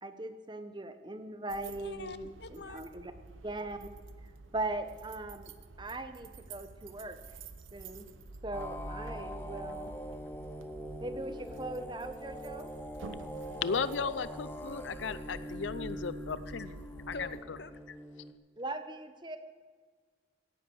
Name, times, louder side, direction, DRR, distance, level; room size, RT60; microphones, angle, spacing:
voice 1, 0.0-3.1 3.4-3.9 4.5-5.5 5.8-7.4 7.7-8.1 8.4-9.9 11.0-12.7 18.6-19.4, right 2 dB, 25° right, 9 dB, 0.9 m, -40 dB
sound 1, 1.5-17.4, right 2 dB, 90° right, 0.9 m, -49 dB
voice 2, 1.6-2.9 16.4-16.7 17.1-17.8, left 3 dB, 55° left, 12 dB, 0.9 m, -45 dB
sound 2, 8.5-18.3, equal, 10° left, 1.0 m, -43 dB
voice 3, 13.6-16.7 17.1-17.2, left 5 dB, 75° left, 15 dB, 0.6 m, -35 dB
16.5 x 10.0 x 7.8 m, 1.6 s
head